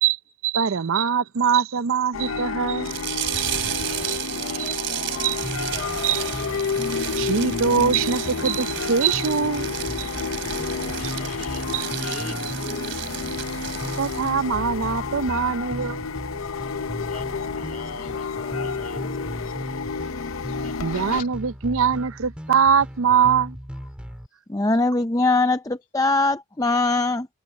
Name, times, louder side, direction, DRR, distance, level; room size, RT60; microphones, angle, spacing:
voice 1, 0.4-2.9 3.4-3.5 4.1-4.2 4.6-4.7 5.2-5.4 6.0-6.2 7.2-9.7 10.0-10.1 11.7-11.9 14.0-16.1 20.8-23.6, right 6 dB, 80° right, 0.6 m, -22 dB
sound 1, 2.1-21.2, left 5 dB, 85° left, 0.7 m, -30 dB
sound 2, 2.8-14.3, right 10 dB, 60° right, 2.8 m, -32 dB
voice 2, 3.7-6.7 7.2-7.4 10.5-13.0 13.4-13.6 17.1-19.5 20.4-21.3, left 3 dB, 40° left, 2.9 m, -41 dB
sound 3, 5.4-24.3, equal, 5° right, 2.5 m, -37 dB
voice 3, 24.5-27.3, left 2 dB, 15° left, 0.5 m, -21 dB
head